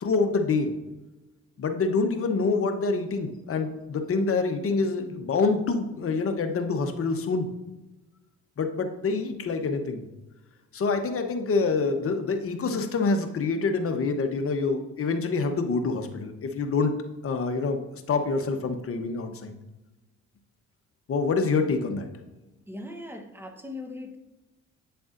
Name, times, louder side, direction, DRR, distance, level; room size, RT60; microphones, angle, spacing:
voice 1, 0.0-0.7 1.6-7.5 8.6-10.0 10.7-16.9 17.2-19.5 21.1-22.1, left 4 dB, 45° left, 6 dB, 0.9 m, -26 dB
voice 2, 22.7-24.2, left 2 dB, 5° right, 5 dB, 1.0 m, -39 dB
9.0 x 6.8 x 2.6 m, 1.1 s
cardioid pair, 90°, 30 cm